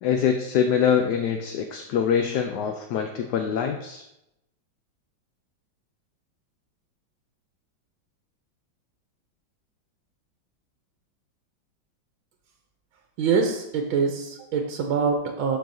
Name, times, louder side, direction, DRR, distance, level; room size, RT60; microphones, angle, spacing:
voice 1, 0.0-4.0, left 7 dB, 70° left, 5 dB, 1.0 m, -24 dB
voice 2, 13.2-15.6, right 5 dB, 85° right, 2 dB, 1.6 m, -24 dB
11.5 x 4.6 x 2.7 m, 0.86 s
omnidirectional pair, 2.1 m